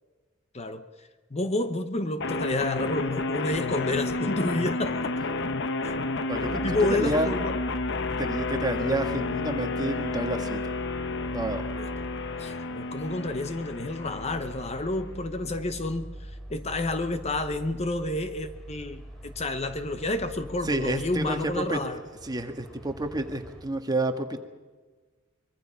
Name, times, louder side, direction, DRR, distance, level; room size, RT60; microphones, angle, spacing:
voice 1, 0.5-0.9 1.3-5.0 5.8-5.9 6.6-7.5 11.7-11.9 12.4-22.0, left 2 dB, 35° left, 9 dB, 0.9 m, -30 dB
sound 1, 2.2-15.2, left 3 dB, 60° left, 1.0 m, -31 dB
sound 2, 6.3-23.6, right 1 dB, 5° left, 3.8 m, -42 dB
voice 2, 6.3-7.3 8.2-10.6 11.3-11.6 20.6-21.8 22.2-24.4, right 2 dB, 20° right, 6 dB, 1.6 m, -29 dB
24.0 x 23.0 x 5.7 m, 1.4 s
head